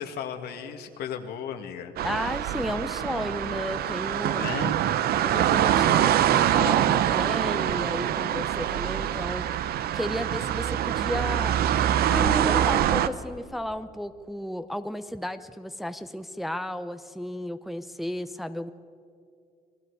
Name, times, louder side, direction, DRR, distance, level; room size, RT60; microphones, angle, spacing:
voice 1, 0.0-1.9 4.4-4.8, left 8 dB, 70° left, 6 dB, 2.0 m, -35 dB
voice 2, 2.0-4.5 5.1-11.6 12.1-18.7, equal, ahead, 9 dB, 0.7 m, -33 dB
sound 1, 2.0-13.1, right 11 dB, 65° right, 0.8 m, -24 dB
28.5 x 20.5 x 4.8 m, 2.4 s
cardioid pair, 110°, 17 cm